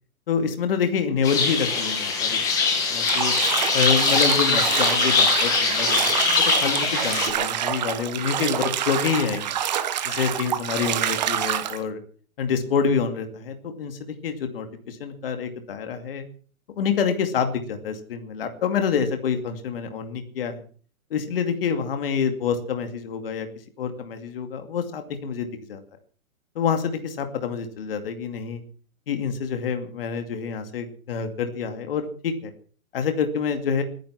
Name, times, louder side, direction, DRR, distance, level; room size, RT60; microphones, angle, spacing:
voice 1, 0.3-2.4 2.9-3.3 3.7-9.6 10.0-12.0 12.4-16.2 16.7-20.6 21.1-23.5 23.8-25.8 26.6-28.6 29.1-32.5 32.9-33.8, left 6 dB, 45° left, 7 dB, 2.5 m, -27 dB
sound 1, 1.2-7.3, left 5 dB, 10° left, 1.3 m, -22 dB
Bathtub (filling or washing), 3.0-11.8, right 10 dB, 30° right, 1.2 m, -27 dB
20.5 x 10.5 x 5.9 m, 0.43 s
hypercardioid pair, 175°, 41 cm